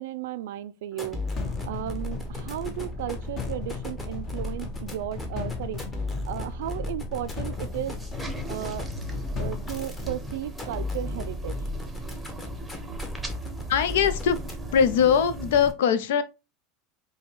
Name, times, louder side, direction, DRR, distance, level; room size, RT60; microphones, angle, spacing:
voice 1, 0.0-5.8 6.3-8.0 8.5-8.9 9.4-11.6, right 12 dB, 80° right, 0.3 m, -35 dB
sound 1, 0.9-14.9, left 1 dB, 15° left, 1.1 m, -35 dB
sound 2, 1.4-10.5, left 6 dB, 40° left, 1.0 m, -38 dB
sound 3, 7.5-15.7, right 2 dB, 5° right, 0.8 m, -39 dB
voice 2, 13.7-14.4 14.7-16.2, left 7 dB, 85° left, 0.5 m, -21 dB
5.0 x 2.2 x 3.0 m
supercardioid pair, 125°, 0 cm